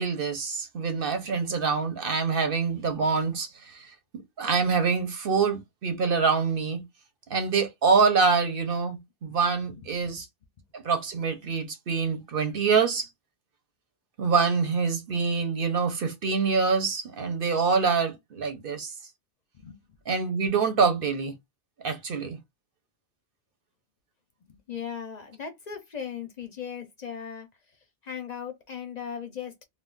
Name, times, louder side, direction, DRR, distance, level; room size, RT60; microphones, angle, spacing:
voice 1, 0.0-3.9 4.1-6.8 7.3-10.2 10.7-13.1 14.2-18.9 20.1-21.3 21.8-22.4, right 5 dB, 50° right, 0.8 m, -25 dB
voice 2, 9.3-10.1 19.5-19.8 24.5-27.5 28.0-29.5, left 7 dB, 50° left, 0.5 m, -38 dB
2.4 x 2.3 x 3.7 m
omnidirectional pair, 1.3 m